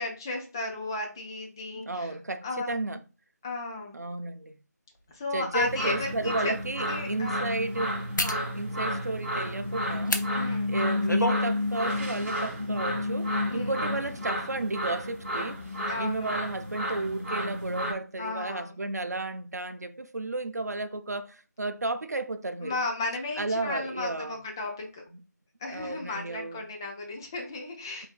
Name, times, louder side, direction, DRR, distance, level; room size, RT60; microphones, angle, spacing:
voice 1, 0.0-2.1 2.4-2.7 3.4-4.0 5.1-6.5 6.9-7.6 8.2-8.5 10.3-10.7 13.5-13.8 15.9-16.3 18.2-18.8 22.6-25.0 25.6-28.1, left 2 dB, 15° left, 0.5 m, -34 dB
voice 2, 1.7-3.0 3.9-4.6 5.3-8.0 8.5-10.2 10.7-15.6 16.0-22.8 23.4-24.4 25.7-26.6, right 2 dB, 65° right, 0.5 m, -33 dB
sound 1, 5.3-5.4 6.1-6.2 8.2-8.4 10.0-10.3 10.8-11.4 11.8-12.0, left 1 dB, 90° left, 0.7 m, -28 dB
sound 2, 5.6-17.9, left 1 dB, 40° right, 1.5 m, -31 dB
5.6 x 2.7 x 2.3 m
figure-of-eight pair, 160°, 10 cm